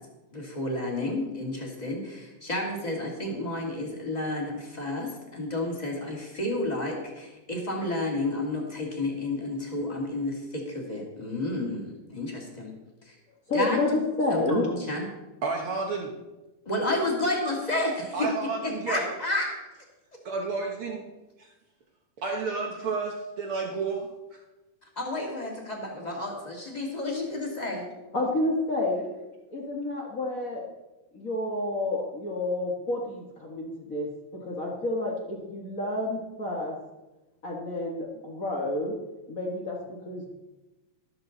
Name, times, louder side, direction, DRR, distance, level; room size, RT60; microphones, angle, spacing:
voice 1, 0.3-12.7 13.1-13.2 13.5-13.8 14.3-15.1 16.7-18.3 18.6-19.5 25.0-27.9, left 2 dB, 15° left, -1 dB, 1.9 m, -31 dB
voice 2, 13.5-14.7 28.1-29.2 29.5-30.6 31.1-36.7 37.4-39.0 39.3-40.2, left 2 dB, 50° left, -1 dB, 1.0 m, -29 dB
voice 3, 15.4-16.1 18.1-19.1 20.2-21.0 21.4-21.5 22.2-24.1, right 4 dB, 80° right, 1 dB, 1.2 m, -31 dB
13.5 x 13.0 x 4.0 m, 1.1 s
omnidirectional pair, 4.2 m